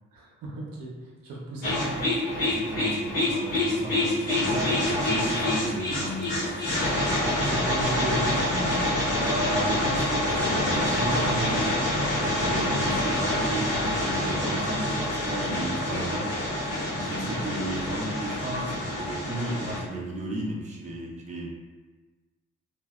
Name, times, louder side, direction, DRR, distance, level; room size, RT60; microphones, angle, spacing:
voice 1, 0.1-2.1 7.4-8.9 17.2-17.4, right 1 dB, 70° right, -4 dB, 0.7 m, -35 dB
sound 1, 1.6-19.8, left 1 dB, 75° left, 1.0 m, -26 dB
voice 2, 2.4-6.6 9.2-11.8 12.2-16.3 16.9-21.5, right 1 dB, 20° right, -3 dB, 0.6 m, -34 dB
2.6 x 2.1 x 2.3 m, 1.3 s
hypercardioid pair, 40°, 36 cm